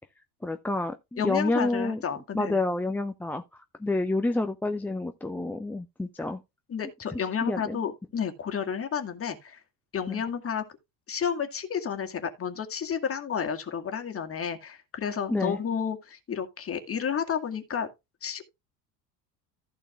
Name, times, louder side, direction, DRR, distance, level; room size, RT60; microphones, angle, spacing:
voice 1, 0.4-2.0 2.3-3.4 3.8-6.4 7.1-7.8 10.1-10.2 15.3-15.6, left 2 dB, 5° left, 0.4 m, -29 dB
voice 2, 1.2-2.6 6.7-9.6 9.9-10.6 11.1-17.9 18.2-18.4, left 7 dB, 25° left, 1.9 m, -31 dB
15.0 x 6.4 x 2.4 m
figure-of-eight pair, 65°, 50 cm